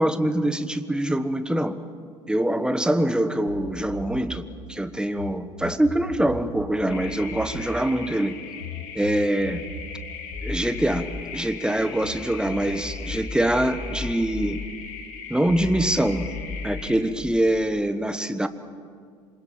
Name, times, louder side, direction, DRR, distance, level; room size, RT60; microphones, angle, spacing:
voice 1, 0.0-1.8 2.3-8.3 8.9-9.7 10.4-14.6 15.3-16.3 16.6-18.5, right 1 dB, 5° right, 11 dB, 1.4 m, -24 dB
sound 1, 3.5-5.3 5.6-12.2 12.5-15.1 15.5-17.1, left 2 dB, 80° left, 2.9 m, -37 dB
sound 2, 6.9-17.0, left 6 dB, 55° left, 3.6 m, -39 dB
26.5 x 21.5 x 7.4 m, 2.1 s
figure-of-eight pair, 65°, 16 cm